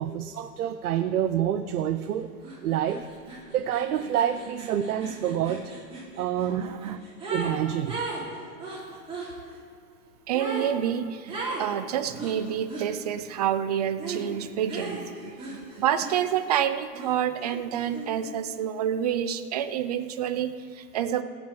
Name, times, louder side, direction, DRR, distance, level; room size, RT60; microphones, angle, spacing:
voice 1, 0.0-2.3 2.6-3.1 3.5-5.7 6.2-6.8 7.3-8.0, right 10 dB, 70° right, 7 dB, 0.9 m, -27 dB
sound 1, 2.4-2.6 2.9-7.6 7.9-9.3 10.3-10.7 11.3-11.7 12.2-12.9 14.0-14.3 14.7-16.5 16.9-18.3, right 3 dB, 10° right, 3.6 m, -37 dB
voice 2, 6.5-7.0 10.3-21.2, right 9 dB, 30° right, 11 dB, 0.4 m, -28 dB
16.0 x 6.2 x 8.4 m, 2.4 s
hypercardioid pair, 150°, 45 cm